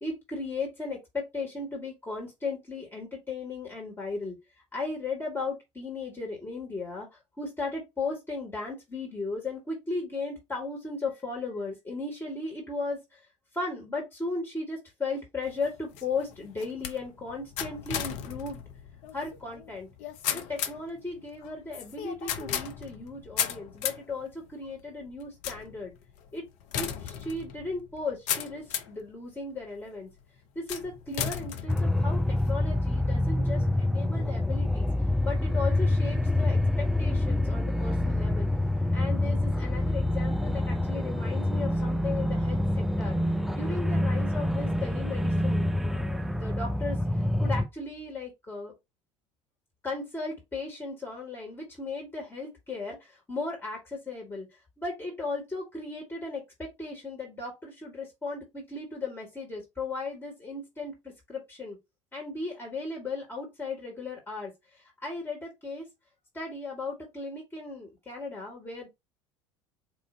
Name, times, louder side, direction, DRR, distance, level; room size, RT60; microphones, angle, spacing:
voice 1, 0.0-4.4 4.7-7.1 7.4-13.2 13.5-18.6 19.1-19.9 20.3-25.9 26.3-26.4 26.7-30.1 30.5-32.2 32.5-34.9 35.2-38.5 38.9-42.6 43.0-43.2 43.5-47.0 47.4-48.7 49.8-54.5 54.8-61.0 61.3-61.8 62.1-65.8 66.3-68.9, left 3 dB, 15° left, 1.4 m, -36 dB
sound 1, 15.4-29.0 29.6-30.1 30.7-32.5, left 9 dB, 45° left, 0.6 m, -36 dB
sound 2, 31.7-47.7, left 1 dB, ahead, 0.3 m, -26 dB
4.3 x 2.5 x 3.7 m
figure-of-eight pair, 70°, 16 cm